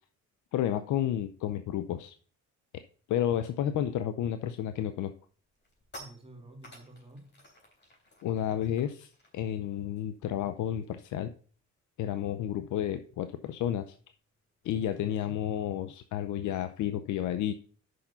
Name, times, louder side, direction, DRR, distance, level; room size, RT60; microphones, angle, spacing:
voice 1, 0.5-2.1 3.1-5.1 8.2-11.3 12.0-13.9 14.6-17.5, left 11 dB, 75° left, 0.6 m, -31 dB
sound 1, 5.3-11.1 11.4-11.6 11.9-16.9, equal, 35° left, 3.5 m, -56 dB
voice 2, 6.0-7.4 14.7-15.4, right 1 dB, 20° right, 2.0 m, -50 dB
6.4 x 5.8 x 5.5 m
cardioid pair, 90°, 30 cm